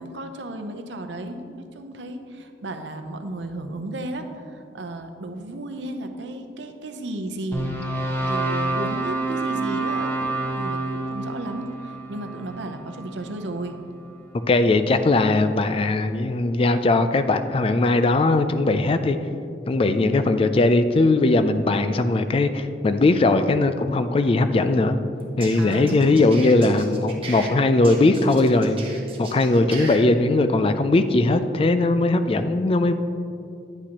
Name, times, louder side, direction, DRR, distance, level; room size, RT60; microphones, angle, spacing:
voice 1, 0.0-13.8 25.6-26.4, right 1 dB, 90° right, 7 dB, 0.7 m, -34 dB
sound 1, 7.5-13.7, right 2 dB, 15° left, 1.1 m, -28 dB
voice 2, 14.5-19.2 19.7-25.0 25.4-28.8 29.2-32.9, left 2 dB, 30° left, 10 dB, 0.3 m, -19 dB
sound 2, 25.2-27.5 27.8-30.0, right 4 dB, 30° right, 1.0 m, -38 dB
9.7 x 8.6 x 2.9 m, 2.5 s
head